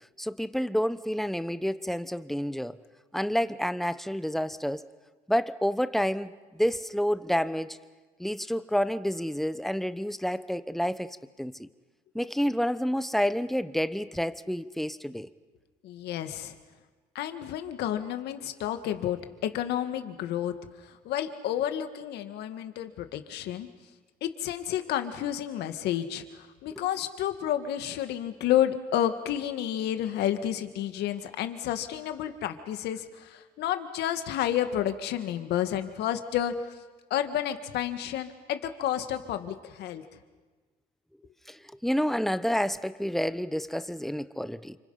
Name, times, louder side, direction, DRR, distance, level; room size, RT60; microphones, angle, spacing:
voice 1, 0.2-2.8 3.1-4.8 5.3-7.8 8.2-11.7 12.1-15.3 26.7-26.8 41.5-44.8, equal, ahead, 13 dB, 0.9 m, -29 dB
voice 2, 15.8-16.5 17.2-20.5 21.1-23.7 24.2-36.5 37.1-40.0, left 11 dB, 80° left, 9 dB, 1.9 m, -30 dB
29.5 x 26.5 x 5.7 m, 1.3 s
cardioid pair, 110°, 17 cm